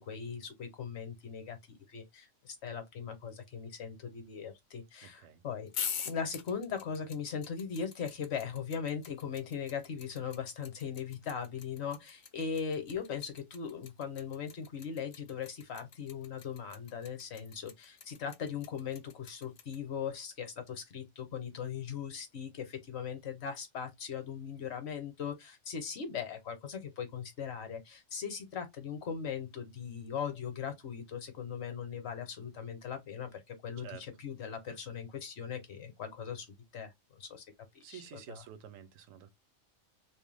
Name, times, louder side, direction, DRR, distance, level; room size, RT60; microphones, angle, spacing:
voice 1, 0.0-5.7 6.1-36.5 36.7-36.9 37.2-37.4 37.7-38.4, left 7 dB, 60° left, 0.9 m, -39 dB
voice 2, 5.0-5.4 33.8-34.1 37.8-39.3, right 9 dB, 80° right, 1.0 m, -50 dB
sound 1, 5.7-19.8, left 7 dB, 85° left, 0.4 m, -43 dB
2.5 x 2.1 x 3.2 m
omnidirectional pair, 1.4 m